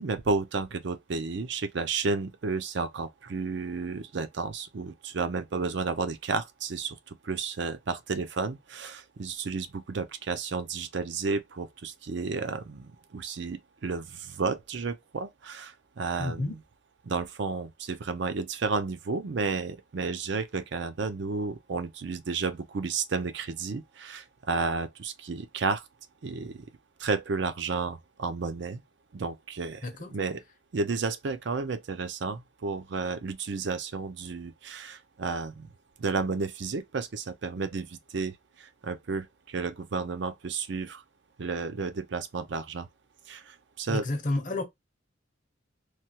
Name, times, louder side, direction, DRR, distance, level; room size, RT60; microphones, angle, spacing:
voice 1, 0.0-16.5 17.0-25.8 26.2-26.7 27.0-28.8 29.1-30.4 30.7-35.7 36.0-41.0 41.4-42.9 43.3-44.1, right 4 dB, 60° right, 0.5 m, -32 dB
voice 2, 16.2-16.6 29.8-30.1 43.9-44.6, left 2 dB, 40° left, 0.7 m, -30 dB
3.2 x 2.3 x 2.7 m
head